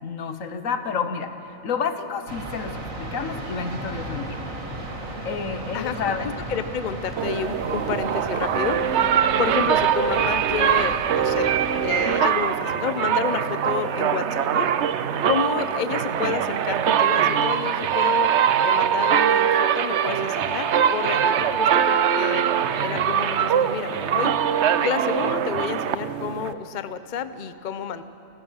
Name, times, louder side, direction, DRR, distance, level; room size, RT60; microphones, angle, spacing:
voice 1, 0.0-4.5 5.2-6.3 9.3-9.4, left 6 dB, 85° left, 9 dB, 1.5 m, -30 dB
sound 1, 2.3-11.9, right 1 dB, 85° right, 2.5 m, -35 dB
voice 2, 5.7-9.1 9.4-11.5 11.8-14.7 15.2-18.3 18.6-22.4 22.8-24.4 24.8-28.0, left 7 dB, 45° left, 12 dB, 0.8 m, -30 dB
sound 2, 7.2-26.5, right 8 dB, 65° right, 0.9 m, -22 dB
28.0 x 15.5 x 6.4 m, 2.7 s
omnidirectional pair, 1.4 m